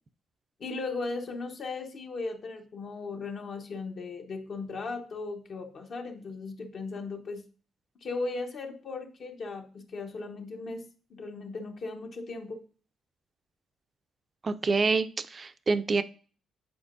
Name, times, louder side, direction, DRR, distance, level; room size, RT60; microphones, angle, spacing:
voice 1, 0.6-7.4 8.0-12.6, left 3 dB, 55° left, 2 dB, 0.9 m, -37 dB
voice 2, 14.4-16.0, right 4 dB, 35° right, 12 dB, 0.4 m, -27 dB
8.4 x 4.4 x 2.6 m, 0.39 s
cardioid pair, 90°, 0 cm